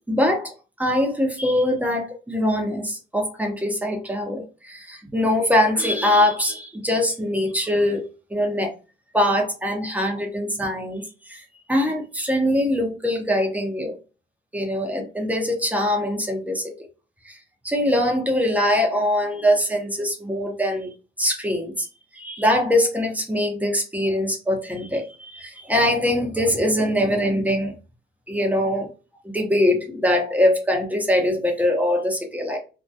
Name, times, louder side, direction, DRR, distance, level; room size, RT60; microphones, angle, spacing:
voice 1, 0.1-0.5 0.8-8.0 8.3-8.7 9.1-14.0 14.5-16.7 17.2-17.4 17.6-20.9 21.2-21.9 22.1-27.7 28.3-28.9 29.2-32.6, left 1 dB, 5° right, 2 dB, 0.8 m, -22 dB
2.7 x 2.2 x 2.2 m, 0.32 s
cardioid pair, 90°, 20 cm